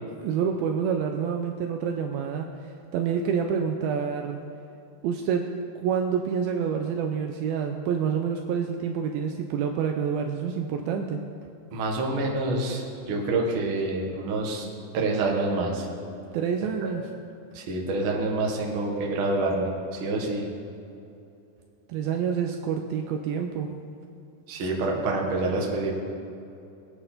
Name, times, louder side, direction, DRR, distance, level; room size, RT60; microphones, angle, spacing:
voice 1, 0.2-2.5 2.9-4.4 5.0-5.5 5.8-11.2 16.3-17.0 21.9-23.7, right 7 dB, 90° right, 3 dB, 2.2 m, -27 dB
voice 2, 11.7-14.6 14.9-15.9 16.8-16.9 17.5-19.7 20.0-20.5 24.5-25.9, right 2 dB, 55° right, -1 dB, 1.4 m, -27 dB
22.0 x 9.1 x 4.3 m, 2.7 s
omnidirectional pair, 5.0 m